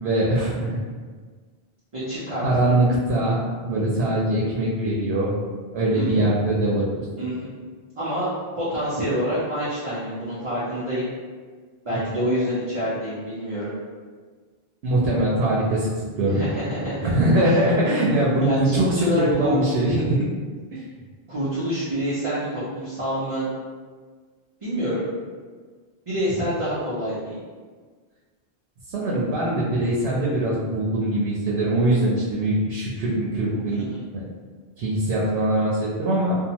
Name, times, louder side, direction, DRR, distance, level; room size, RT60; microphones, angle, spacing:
voice 1, 0.0-0.8 2.4-5.3 5.7-7.0 14.8-15.9 16.2-16.4 17.0-20.3 20.7-20.8 28.9-33.8 34.1-34.2 34.8-36.3, right 1 dB, 85° right, -5 dB, 0.8 m, -22 dB
voice 2, 1.9-2.8 5.9-6.3 7.2-7.5 8.0-8.3 8.5-11.1 11.8-13.7 16.3-17.1 17.4-17.6 18.4-19.6 21.3-23.4 24.6-25.1 26.1-27.4 33.7-34.0, equal, 35° right, -11 dB, 0.6 m, -27 dB
2.8 x 2.1 x 2.8 m, 1.5 s
omnidirectional pair, 1.0 m